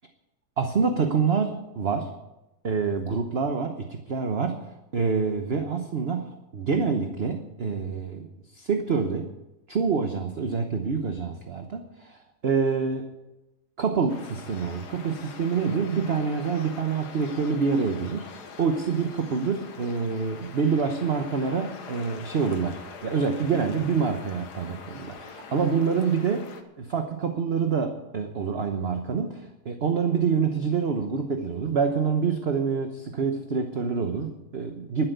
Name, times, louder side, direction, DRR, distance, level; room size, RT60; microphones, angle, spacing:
voice 1, 0.6-2.1 2.6-8.3 8.5-9.3 9.7-13.1 13.8-18.3 18.6-26.5 26.8-35.1, right 5 dB, 45° right, 6 dB, 1.1 m, -26 dB
sound 1, 14.1-26.6, left 5 dB, 75° left, 1.8 m, -44 dB
12.0 x 10.0 x 8.1 m, 0.96 s
omnidirectional pair, 1.8 m